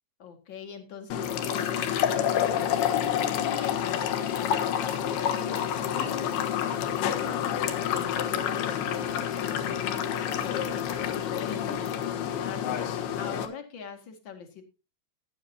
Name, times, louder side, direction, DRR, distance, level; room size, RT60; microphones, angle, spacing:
voice 1, 0.2-14.6, left 7 dB, 45° left, 5 dB, 1.6 m, -43 dB
sound 1, 1.1-13.5, left 9 dB, 70° left, 3.1 m, -28 dB
15.5 x 11.0 x 2.8 m, 0.28 s
omnidirectional pair, 5.1 m